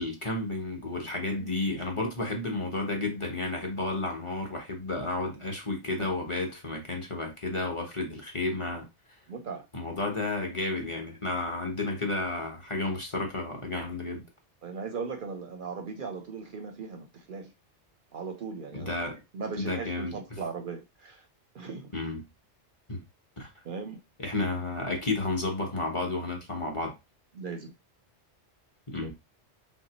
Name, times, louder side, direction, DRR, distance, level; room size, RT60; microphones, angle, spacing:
voice 1, 0.0-8.9 9.7-14.2 18.7-19.2 19.6-20.2 21.9-22.2 22.9-23.0 23.4-23.5 24.2-26.9 28.9-29.1, left 2 dB, 30° left, 0.9 m, -32 dB
voice 2, 9.3-9.7 14.6-17.5 18.1-19.0 19.3-21.3 21.5-21.9 23.6-24.0 27.3-27.7 29.0-29.1, right 5 dB, 60° right, 0.6 m, -38 dB
3.2 x 2.7 x 2.8 m
omnidirectional pair, 1.2 m